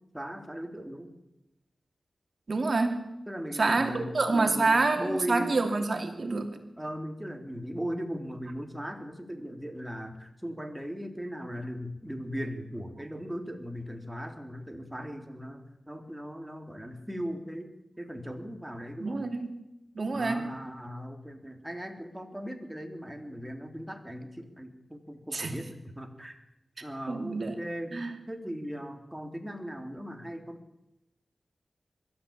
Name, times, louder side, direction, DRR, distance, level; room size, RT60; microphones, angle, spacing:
voice 1, 0.1-1.1 3.3-5.6 6.8-19.2 20.1-26.4 26.8-30.6, equal, 10° right, 5 dB, 3.3 m, -38 dB
voice 2, 2.5-3.1 3.5-6.6 19.0-19.6 19.9-20.5 25.3-25.5 27.1-27.5 27.9-28.2, right 3 dB, 55° right, 6 dB, 3.0 m, -27 dB
23.0 x 13.5 x 8.8 m, 0.92 s
wide cardioid pair, 65°, 0 cm